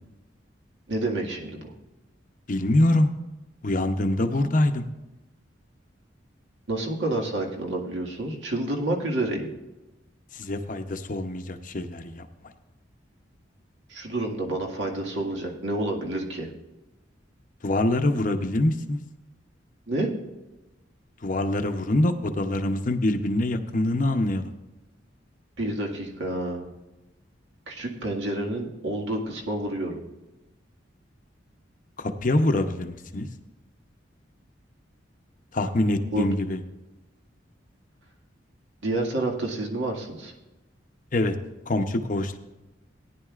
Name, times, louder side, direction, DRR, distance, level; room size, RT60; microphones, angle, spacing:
voice 1, 0.9-1.6 6.7-9.5 13.9-16.5 19.9-20.1 25.6-26.7 27.7-30.0 36.1-36.3 38.8-40.3, right 1 dB, 75° right, 0 dB, 1.9 m, -29 dB
voice 2, 2.5-3.1 3.6-4.9 10.3-12.3 17.6-19.0 21.2-24.5 32.0-33.3 35.5-36.6 41.1-41.3 41.7-42.4, left 1 dB, 45° left, 7 dB, 0.8 m, -24 dB
18.0 x 10.0 x 2.5 m, 1.1 s
head